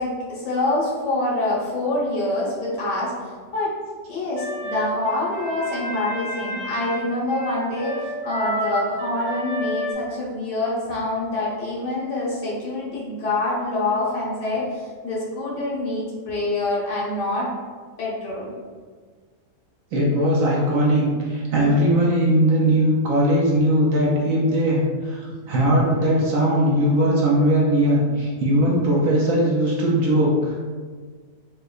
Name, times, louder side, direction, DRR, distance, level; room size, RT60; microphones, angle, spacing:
voice 1, 0.0-3.7 4.1-17.5 18.0-18.5, left 2 dB, 90° left, -5 dB, 1.6 m, -26 dB
sound 1, 4.4-9.9, equal, 55° left, 1.1 m, -30 dB
voice 2, 19.9-30.5, right 1 dB, 65° right, -4 dB, 0.9 m, -19 dB
4.5 x 2.2 x 2.3 m, 1.5 s
omnidirectional pair, 1.8 m